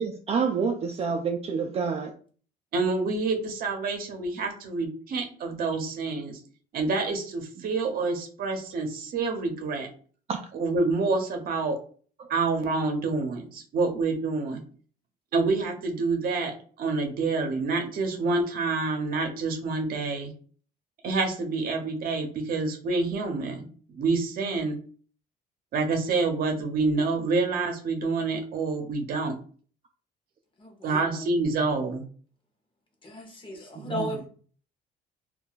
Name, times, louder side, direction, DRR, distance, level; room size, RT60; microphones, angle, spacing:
voice 1, 0.0-2.1 10.3-10.4 12.2-12.3 33.8-34.2, right 5 dB, 35° right, 3 dB, 0.4 m, -28 dB
voice 2, 2.7-6.4 6.7-9.9 10.5-11.8 12.3-14.6 15.3-20.3 21.0-23.7 24.0-24.8 25.7-29.4 30.8-32.0, right 3 dB, 60° right, 4 dB, 0.7 m, -27 dB
voice 3, 30.6-31.3 33.0-34.3, equal, 30° left, 2 dB, 0.9 m, -36 dB
2.3 x 2.2 x 3.8 m, 0.43 s
cardioid pair, 110°, 17 cm